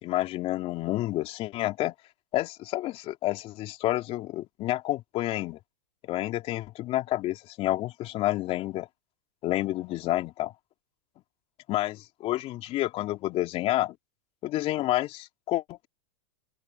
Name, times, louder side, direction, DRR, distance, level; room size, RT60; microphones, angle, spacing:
voice 1, 0.0-1.9 2.3-5.6 6.1-8.9 9.4-10.5 11.7-13.9 14.4-15.9, left 16 dB, 40° left, 3.3 m, -29 dB
open air
hypercardioid pair, 120°, 15 cm